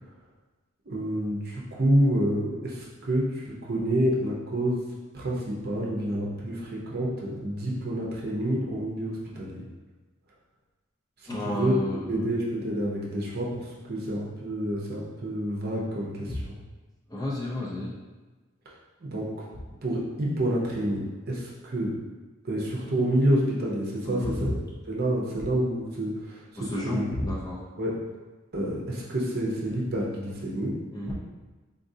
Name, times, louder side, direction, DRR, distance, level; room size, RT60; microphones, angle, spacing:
voice 1, 0.9-4.8 5.1-9.6 11.2-11.7 12.1-16.5 19.0-19.3 19.8-21.9 22.4-24.6 24.9-26.4 26.8-27.0 27.8-28.0 28.5-30.7, right 1 dB, 50° right, -4 dB, 0.7 m, -28 dB
voice 2, 11.3-12.2 16.3-16.4 17.1-17.9 24.0-24.5 26.6-27.6 30.9-31.1, left 1 dB, 20° left, -6 dB, 0.6 m, -31 dB
3.9 x 2.4 x 2.6 m, 1.2 s
head